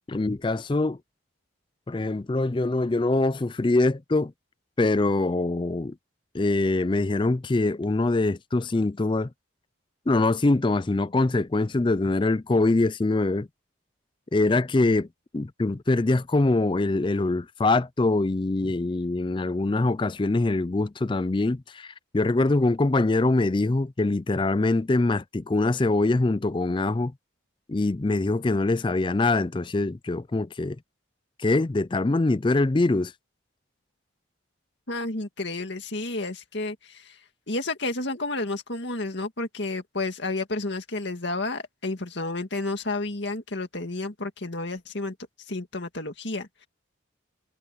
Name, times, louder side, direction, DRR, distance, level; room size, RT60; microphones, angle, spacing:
voice 1, 0.1-1.0 1.9-4.3 4.8-5.9 6.3-9.3 10.1-13.5 14.3-15.1 15.3-27.1 27.7-30.8 31.4-33.1, left 2 dB, 25° left, 0.4 m, -23 dB
voice 2, 34.9-37.2 37.5-45.1 45.5-46.7, left 2 dB, 60° left, 2.2 m, -31 dB
head